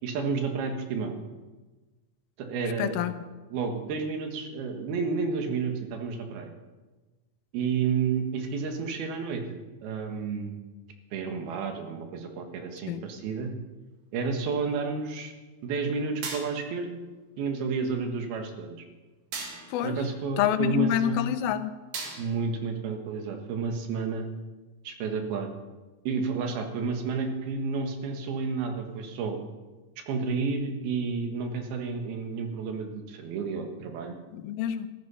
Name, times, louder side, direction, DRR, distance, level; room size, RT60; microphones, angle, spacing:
voice 1, 0.0-1.1 2.4-3.1 3.5-6.5 7.5-10.6 11.1-13.5 14.1-15.3 15.6-16.9 17.4-18.8 19.8-21.3 22.2-24.3 24.9-25.5 26.1-29.4 30.1-34.2, right 5 dB, 85° right, 5 dB, 3.5 m, -31 dB
voice 2, 2.8-3.1 12.9-13.0 19.7-20.0 20.4-21.7 34.3-34.9, left 10 dB, 80° left, 11 dB, 2.5 m, -27 dB
sound 1, 16.2-16.8 19.3-19.9 21.9-22.5, right 4 dB, 65° right, 3.6 m, -37 dB
13.5 x 13.5 x 5.6 m, 1.2 s
omnidirectional pair, 4.3 m